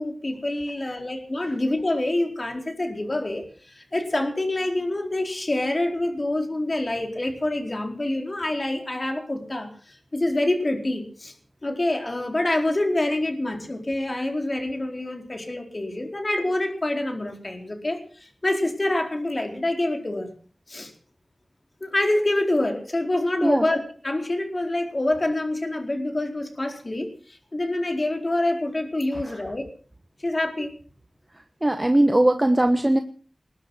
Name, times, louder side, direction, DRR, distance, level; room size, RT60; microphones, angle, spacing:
voice 1, 0.0-11.3 11.6-20.3 20.7-20.9 21.8-23.8 24.0-29.7 30.2-30.7, left 1 dB, 35° left, 3 dB, 4.3 m, -26 dB
voice 2, 31.6-33.0, right 1 dB, 20° right, 7 dB, 1.3 m, -20 dB
21.0 x 10.5 x 6.3 m, 0.42 s
wide cardioid pair, 85°, 0 cm